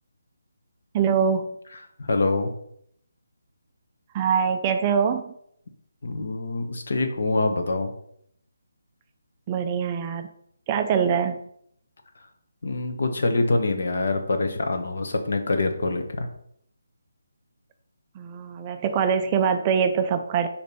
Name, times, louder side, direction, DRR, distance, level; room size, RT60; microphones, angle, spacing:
voice 1, 0.9-1.5 4.1-5.3 9.5-10.3 10.7-11.4 18.2-20.5, right 7 dB, 20° right, 7 dB, 0.4 m, -23 dB
voice 2, 2.0-2.5 6.0-7.9 12.6-16.3, left 3 dB, 60° left, 6 dB, 1.2 m, -25 dB
5.2 x 4.4 x 5.5 m, 0.70 s
hypercardioid pair, 170°, 0 cm